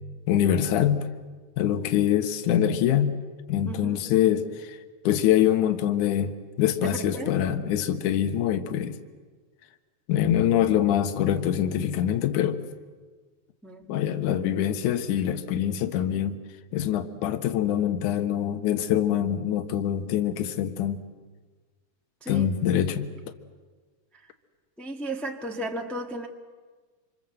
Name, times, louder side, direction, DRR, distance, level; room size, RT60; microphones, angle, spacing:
voice 1, 0.3-1.1 1.6-3.2 3.5-4.8 5.0-9.0 10.1-12.6 13.9-16.4 16.7-21.0 22.3-23.1, left 10 dB, 75° left, 8 dB, 2.7 m, -24 dB
voice 2, 3.6-4.0 6.8-7.3 13.6-14.0 22.2-22.5 24.8-26.3, right 1 dB, ahead, 2 dB, 0.6 m, -34 dB
28.0 x 26.5 x 7.8 m, 1.4 s
omnidirectional pair, 3.6 m